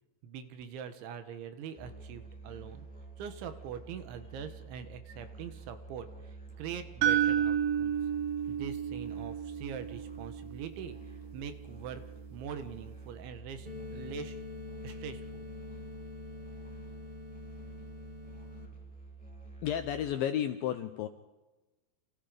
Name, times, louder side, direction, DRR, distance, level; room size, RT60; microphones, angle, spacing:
voice 1, 0.2-2.9 3.2-8.0 8.5-11.0 11.3-12.0 12.3-14.4 14.8-15.5, right 8 dB, 85° right, 9 dB, 3.9 m, -43 dB
Musical instrument, 1.7-20.1, right 3 dB, ahead, 5.1 m, -49 dB
sound 1, 7.0-11.1, right 9 dB, 70° right, 2.5 m, -31 dB
sound 2, 13.6-18.6, left 3 dB, 40° right, 0.6 m, -45 dB
voice 2, 19.6-21.1, left 10 dB, 80° left, 9 dB, 2.1 m, -32 dB
29.5 x 27.5 x 5.2 m, 1.1 s
omnidirectional pair, 5.2 m